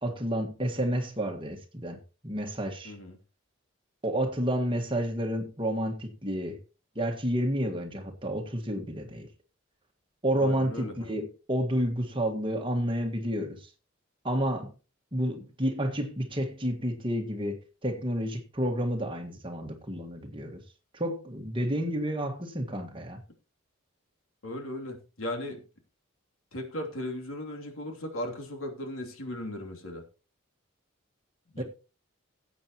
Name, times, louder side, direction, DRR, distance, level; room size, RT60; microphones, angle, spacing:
voice 1, 0.0-2.0 2.2-2.9 4.0-6.6 6.9-9.3 10.2-13.7 14.2-14.7 15.1-20.6 20.9-23.2 31.6-31.7, equal, 25° right, 1.7 m, -30 dB
voice 2, 2.8-3.2 10.4-11.1 24.4-25.6 26.5-30.0 31.5-31.6, left 1 dB, 85° left, 2.9 m, -37 dB
18.0 x 8.3 x 3.0 m
head